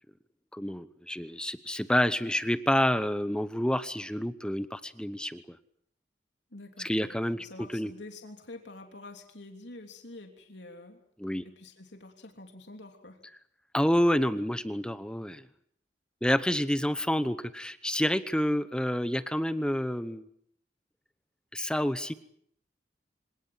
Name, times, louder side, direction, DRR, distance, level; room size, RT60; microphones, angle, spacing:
voice 1, 0.5-5.6 6.8-7.4 7.7-7.9 11.2-11.4 13.7-15.4 16.2-20.2 21.5-22.1, equal, 5° left, 12 dB, 0.9 m, -28 dB
voice 2, 6.5-11.0 11.4-13.2, left 2 dB, 80° left, 3 dB, 3.2 m, -47 dB
26.0 x 18.0 x 8.9 m, 0.71 s
head